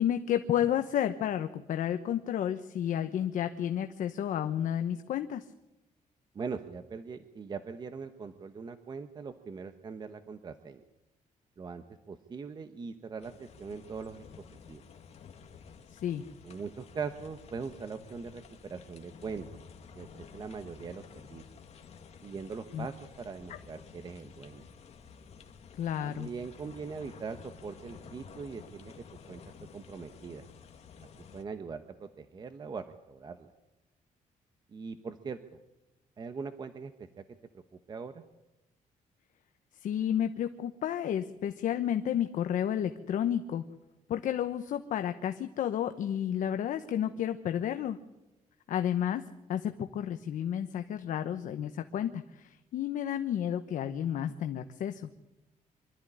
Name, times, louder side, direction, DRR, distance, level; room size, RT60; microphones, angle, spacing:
voice 1, 0.0-5.4 15.9-16.2 22.7-22.9 25.7-26.3 39.8-43.6 44.1-48.0 48.7-49.2 49.5-55.1, left 10 dB, 65° left, 8 dB, 1.1 m, -31 dB
voice 2, 6.3-10.8 11.6-14.3 14.7-14.8 16.4-19.5 19.9-21.4 22.2-24.7 26.0-29.4 29.7-30.5 31.0-31.1 31.3-33.5 34.7-35.6 36.2-37.2 37.5-38.2, right 5 dB, 30° right, 9 dB, 1.0 m, -41 dB
sound 1, 13.2-31.4, left 6 dB, 50° left, 2.1 m, -52 dB
25.0 x 13.5 x 10.0 m, 0.98 s
cardioid pair, 165°, 14 cm